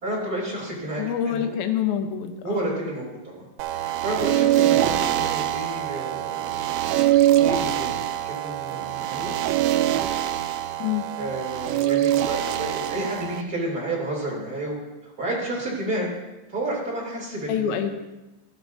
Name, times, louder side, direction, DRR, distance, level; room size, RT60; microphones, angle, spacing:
voice 1, 0.0-1.5 2.4-6.7 7.3-9.3 11.2-16.1 16.5-17.8, right 1 dB, 25° right, -5 dB, 3.0 m, -31 dB
voice 2, 1.0-2.7 10.8-11.1 17.5-17.9, left 9 dB, 80° left, 6 dB, 2.1 m, -26 dB
sound 1, 3.6-13.4, right 13 dB, 85° right, 2.9 m, -23 dB
17.0 x 12.5 x 2.7 m, 1.0 s
omnidirectional pair, 5.4 m